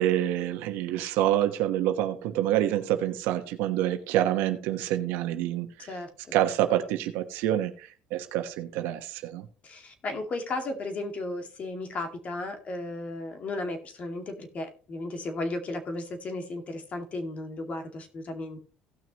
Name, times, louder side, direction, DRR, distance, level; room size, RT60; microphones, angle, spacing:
voice 1, 0.0-5.9 6.3-9.4, right 12 dB, 85° right, 8 dB, 1.1 m, -27 dB
voice 2, 5.8-6.1 9.6-18.6, left 2 dB, 40° left, 6 dB, 2.1 m, -35 dB
17.0 x 6.1 x 3.0 m, 0.39 s
cardioid pair, 105°, 3 cm